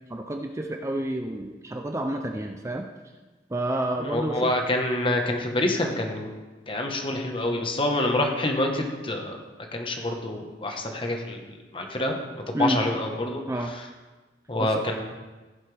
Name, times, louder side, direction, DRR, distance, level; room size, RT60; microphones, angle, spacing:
voice 1, 0.1-2.9 3.5-4.5 12.5-12.8 13.5-13.7 14.6-14.8, right 1 dB, 15° right, 4 dB, 0.5 m, -29 dB
voice 2, 4.0-6.3 6.7-9.4 9.7-12.2 12.5-13.4 14.5-15.0, left 1 dB, 30° left, 3 dB, 1.3 m, -27 dB
16.0 x 7.6 x 3.5 m, 1.2 s
head